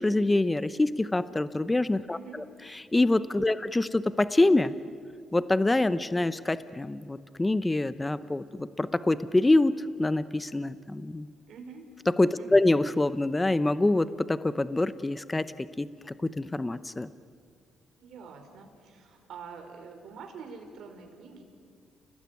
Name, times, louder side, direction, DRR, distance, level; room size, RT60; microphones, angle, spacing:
voice 1, 0.0-2.2 2.7-4.7 5.3-11.3 12.2-15.9 16.2-17.1, left 2 dB, 15° left, 14 dB, 0.8 m, -25 dB
voice 2, 2.1-2.5 3.4-3.6 11.5-11.9 12.3-12.7 18.0-21.4, right 5 dB, 70° right, 4 dB, 4.8 m, -46 dB
30.0 x 19.0 x 9.6 m, 2.2 s
cardioid pair, 90°, 0 cm